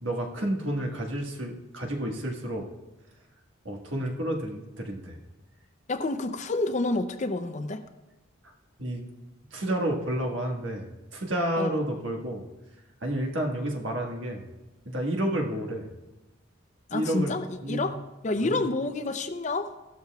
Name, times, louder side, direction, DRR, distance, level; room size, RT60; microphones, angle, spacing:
voice 1, 0.0-2.7 3.6-5.2 8.8-9.0 9.5-12.4 13.0-14.5 14.8-15.9 16.9-17.3 17.6-17.9 18.4-18.6, right 1 dB, 65° right, 1 dB, 1.6 m, -30 dB
voice 2, 5.9-7.8 11.6-11.9 16.9-17.9 18.2-19.7, left 2 dB, 35° left, 9 dB, 0.5 m, -29 dB
16.0 x 12.5 x 2.3 m, 1.1 s
head